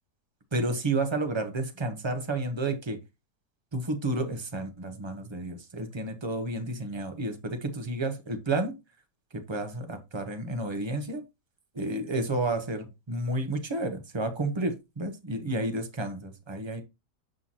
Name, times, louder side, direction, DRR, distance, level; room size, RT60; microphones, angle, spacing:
voice 1, 0.5-3.0 3.7-8.7 9.3-11.2 11.7-16.8, right 2 dB, 20° right, 0.8 m, -31 dB
7.9 x 5.7 x 2.9 m
omnidirectional pair, 1.9 m